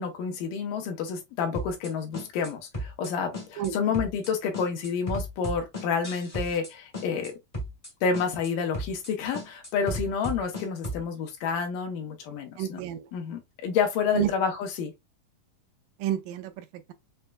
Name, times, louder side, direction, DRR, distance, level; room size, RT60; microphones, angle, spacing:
voice 1, 0.0-7.3 8.0-12.8 13.1-14.9, left 6 dB, 80° left, 2.6 m, -29 dB
sound 1, 1.5-1.9 2.1-2.5 2.7-3.1 3.3-3.7 3.9-4.3 4.5-6.7 6.9-7.3 7.5-8.5 8.7-9.1 9.3-11.0, equal, 40° left, 0.4 m, -34 dB
voice 2, 12.6-13.1 14.1-14.3 16.0-16.9, right 11 dB, 85° right, 2.2 m, -30 dB
6.3 x 2.2 x 2.3 m
omnidirectional pair, 3.8 m